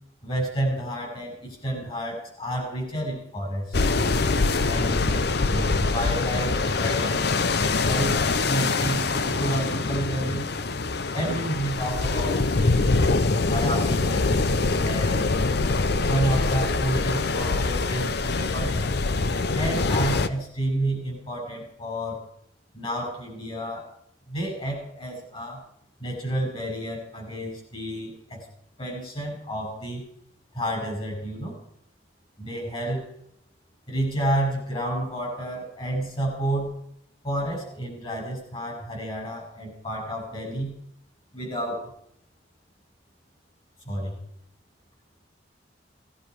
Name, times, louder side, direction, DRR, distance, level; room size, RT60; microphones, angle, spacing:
voice 1, 0.2-3.7 4.6-7.2 7.8-10.7 11.1-12.9 13.5-14.5 14.8-15.3 16.1-18.8 19.5-22.2 22.7-23.9 24.3-25.6 26.0-28.5 28.8-30.0 30.5-31.6 32.4-33.1 33.9-36.8 37.2-40.8 41.3-41.9 43.8-44.2, right 1 dB, 30° left, 0 dB, 6.7 m, -30 dB
sound 1, 3.7-20.3, left 3 dB, 60° left, 0.8 m, -24 dB
19.0 x 11.0 x 4.8 m, 0.73 s
head